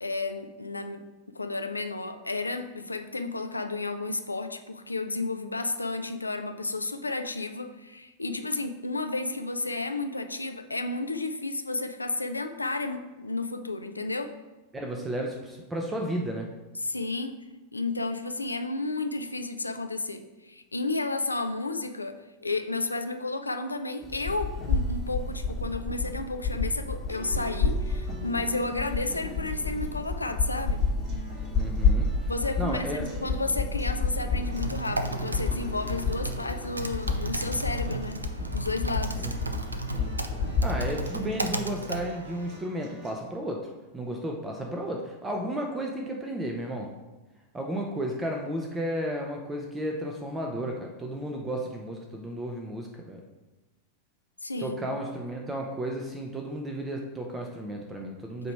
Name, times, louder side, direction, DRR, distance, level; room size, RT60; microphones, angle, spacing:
voice 1, 0.0-14.3 16.8-17.4 17.7-30.8 32.3-38.2 38.5-39.2 54.4-54.8, left 2 dB, 80° left, 8 dB, 0.4 m, -32 dB
voice 2, 14.7-16.5 31.6-32.1 32.6-33.0 39.2-39.3 39.9-40.1 40.6-43.6 43.9-46.9 47.5-53.2 54.6-58.5, right 1 dB, 10° right, 1 dB, 0.7 m, -33 dB
sound 1, 24.0-41.0, left 4 dB, 25° left, 1.1 m, -30 dB
sound 2, 27.1-43.1, right 1 dB, 35° right, 1.9 m, -47 dB
Typing, 34.4-42.6, right 2 dB, 80° right, 0.4 m, -35 dB
7.9 x 3.0 x 4.6 m, 1.1 s
figure-of-eight pair, 90°, 0 cm